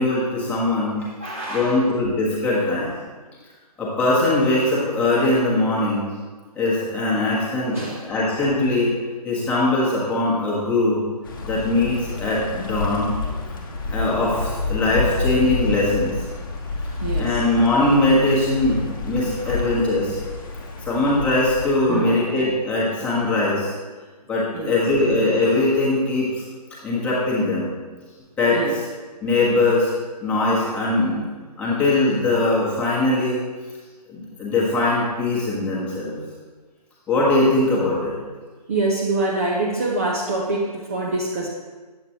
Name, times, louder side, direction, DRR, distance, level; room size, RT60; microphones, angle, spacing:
voice 1, 0.0-1.0 1.5-2.9 3.8-6.1 6.5-7.8 8.1-8.9 9.2-11.0 11.4-13.1 13.9-16.1 17.2-20.2 20.9-23.7 24.3-26.4 26.8-27.7 28.4-28.6 29.2-29.9 30.2-31.3 31.6-33.4 34.1-36.2 37.1-38.1, left 2 dB, 5° left, -6 dB, 1.1 m, -21 dB
voice 2, 1.0-1.8 7.7-8.1 16.8-17.5 19.3-19.7 21.9-22.9 24.5-24.7 28.5-28.8 38.7-41.5, right 2 dB, 20° right, -3 dB, 0.5 m, -26 dB
sound 1, 11.2-21.7, left 3 dB, 30° left, 0.9 m, -29 dB
8.5 x 7.6 x 2.9 m, 1.4 s
figure-of-eight pair, 145°, 21 cm